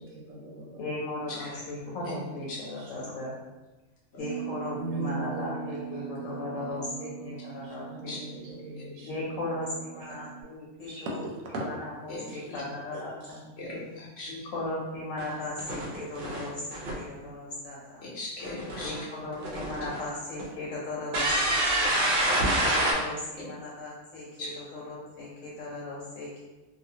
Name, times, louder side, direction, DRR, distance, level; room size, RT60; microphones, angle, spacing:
voice 1, 0.0-0.8 1.3-2.2 2.8-3.1 4.7-9.2 9.9-10.4 10.9-11.7 12.3-12.4 12.9-13.4, right 2 dB, 85° right, -2 dB, 1.0 m, -40 dB
voice 2, 0.8-3.3 4.2-8.2 9.0-11.3 11.6-13.5 14.3-18.0 18.8-21.9 22.6-26.4, left 2 dB, 85° left, -5 dB, 1.0 m, -37 dB
voice 3, 1.3-1.6 2.0-2.1 2.5-2.6 8.1-8.2 12.1-12.6 13.6-14.3 18.0-18.9 24.4-24.5, left 2 dB, 60° left, -4 dB, 0.9 m, -38 dB
Bass guitar, 4.2-10.4, right 17 dB, 5° right, 0.8 m, -41 dB
sound 1, 15.2-15.3 15.6-16.9 18.4-19.0 19.3-20.0 20.4-20.5 21.1-22.9, right 1 dB, 55° right, 0.6 m, -27 dB
2.5 x 2.3 x 2.7 m, 1.1 s
omnidirectional pair, 1.3 m